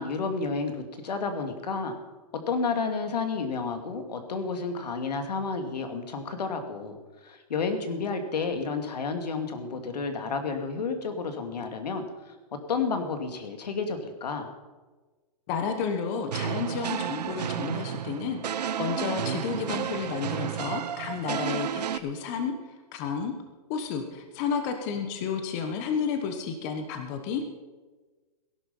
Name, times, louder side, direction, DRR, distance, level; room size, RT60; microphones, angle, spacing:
voice 1, 0.0-2.0 2.3-12.3 12.7-14.5, left 4 dB, 85° left, 6 dB, 2.5 m, -31 dB
voice 2, 15.5-22.5 22.9-23.3 23.7-27.4, left 6 dB, 25° left, 6 dB, 1.1 m, -31 dB
sound 1, 16.3-22.0, right 9 dB, 85° right, 0.8 m, -32 dB
18.0 x 11.5 x 5.5 m, 1.3 s
hypercardioid pair, 170°, 20 cm